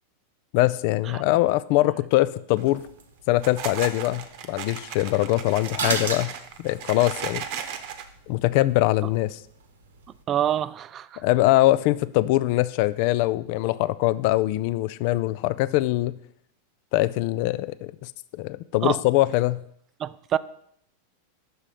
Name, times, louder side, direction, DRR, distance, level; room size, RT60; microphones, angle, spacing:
voice 1, 0.5-2.8 3.3-6.3 6.6-7.4 8.3-9.4 11.2-16.1 16.9-18.1 18.4-19.6, left 17 dB, 55° left, 0.3 m, -22 dB
sound 1, 2.5-2.9 3.3-8.0, right 8 dB, 55° right, 0.8 m, -36 dB
sound 2, 2.6-10.2, right 4 dB, 85° right, 1.0 m, -38 dB
voice 2, 10.3-11.2 18.8-19.0 20.0-20.4, right 10 dB, 35° right, 0.3 m, -26 dB
6.2 x 5.5 x 5.0 m
hypercardioid pair, 105°, 0 cm